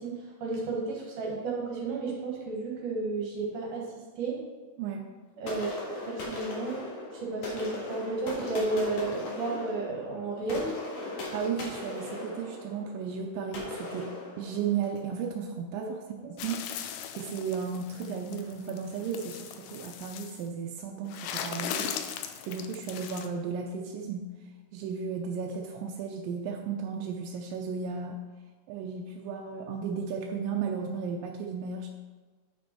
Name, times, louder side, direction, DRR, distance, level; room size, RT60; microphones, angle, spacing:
voice 1, 0.0-3.9 4.2-4.4 5.4-6.8 7.1-10.8 15.8-15.9 16.2-16.3, right 3 dB, 70° right, -2 dB, 2.8 m, -33 dB
voice 2, 4.8-5.1 11.3-16.0 16.3-16.9 17.2-24.3 24.7-28.2 28.7-31.9, right 6 dB, 90° right, 1 dB, 2.3 m, -34 dB
sound 1, 5.5-15.1, left 2 dB, 55° left, 2.7 m, -38 dB
sound 2, 16.4-20.4 21.1-23.3, left 9 dB, 80° left, 2.1 m, -39 dB
9.1 x 5.3 x 4.4 m, 1.4 s
omnidirectional pair, 3.8 m